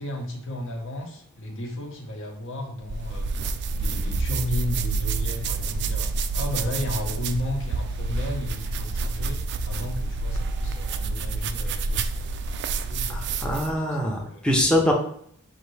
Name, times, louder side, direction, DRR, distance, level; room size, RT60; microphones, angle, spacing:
voice 1, 0.0-3.3 3.7-12.5 12.8-14.4, left 1 dB, 60° left, 2 dB, 0.9 m, -34 dB
sound 1, 2.8-13.8, right 3 dB, 50° right, 0.3 m, -28 dB
voice 2, 13.1-14.9, left 1 dB, 5° left, -1 dB, 0.6 m, -24 dB
5.8 x 2.6 x 3.2 m, 0.66 s
head